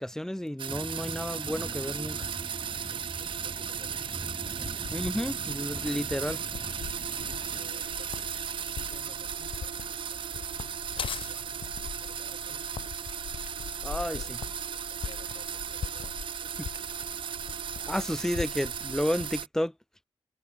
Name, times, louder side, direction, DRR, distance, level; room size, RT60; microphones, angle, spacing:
voice 1, 0.0-2.3 4.9-6.4 13.8-14.2 16.6-16.7 17.9-19.7, left 1 dB, 5° left, 1.0 m, -31 dB
sound 1, 0.6-19.5, right 8 dB, 65° right, 0.3 m, -36 dB
The Sound of Wind heard from inside a building, 0.7-7.7, right 1 dB, 10° right, 2.6 m, -44 dB
sound 2, 1.5-19.4, left 7 dB, 70° left, 0.7 m, -43 dB
voice 2, 2.7-4.8 6.8-10.6 10.9-11.7 12.0-12.7 13.7-14.4 14.7-17.5, left 8 dB, 90° left, 5.3 m, -57 dB
cardioid pair, 55°, 9 cm